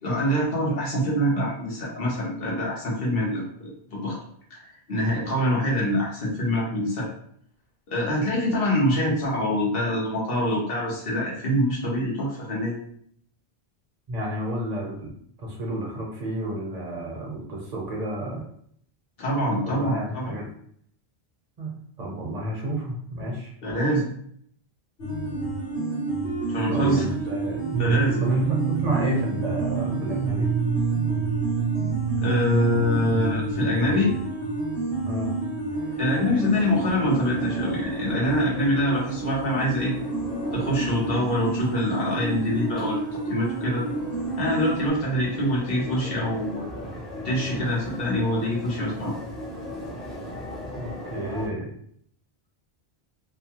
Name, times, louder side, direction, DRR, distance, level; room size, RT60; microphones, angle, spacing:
voice 1, 0.0-4.2 4.5-7.1 7.9-12.8 19.2-20.3 23.6-24.1 26.5-27.0 27.8-28.2 32.2-34.1 36.0-39.9 40.5-43.8 44.4-46.7 47.2-49.2, equal, 65° left, -5 dB, 1.1 m, -25 dB
voice 2, 14.1-15.1 15.4-18.5 19.6-20.5 21.6-21.7 22.0-23.5 26.7-27.6 28.2-30.5 35.1-35.3 50.8-51.7, right 1 dB, 45° right, -1 dB, 0.7 m, -30 dB
sound 1, 25.0-44.9, right 4 dB, 90° left, 1.5 m, -28 dB
sound 2, 35.7-51.5, equal, ahead, 0.4 m, -38 dB
2.7 x 2.2 x 2.8 m, 0.64 s
omnidirectional pair, 1.1 m